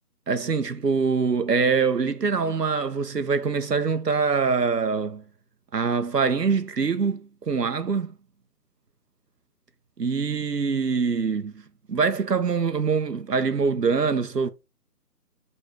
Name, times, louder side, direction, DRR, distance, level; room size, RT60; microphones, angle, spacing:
voice 1, 0.3-5.2 5.7-8.1 10.0-11.6 11.9-14.5, right 5 dB, 85° right, 1.2 m, -24 dB
6.5 x 4.2 x 4.9 m
figure-of-eight pair, 155°, 47 cm